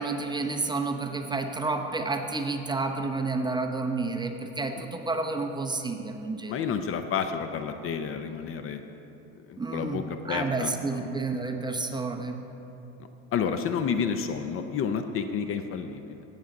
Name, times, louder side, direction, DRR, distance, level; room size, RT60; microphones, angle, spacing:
voice 1, 0.0-6.6 9.6-12.4, right 3 dB, 15° right, 4 dB, 0.7 m, -30 dB
voice 2, 6.5-8.8 9.5-11.0 13.3-16.2, left 6 dB, 40° left, 8 dB, 0.6 m, -30 dB
17.0 x 7.2 x 3.8 m, 2.9 s
supercardioid pair, 115°, 33 cm